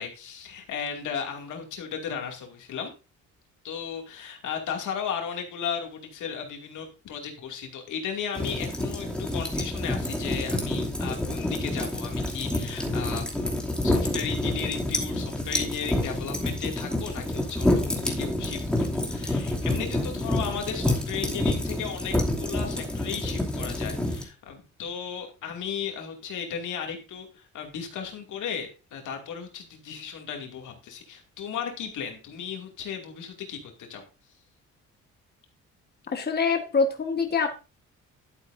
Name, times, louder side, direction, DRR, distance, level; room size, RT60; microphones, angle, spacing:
voice 1, 0.0-2.9 3.6-13.4 13.8-34.0, left 7 dB, 80° left, 2 dB, 2.5 m, -35 dB
sound 1, 8.3-24.2, left 1 dB, 5° left, 2.7 m, -28 dB
voice 2, 36.1-37.5, left 4 dB, 35° left, 4 dB, 1.5 m, -24 dB
11.5 x 8.5 x 2.7 m, 0.31 s
cardioid pair, 90°, 30 cm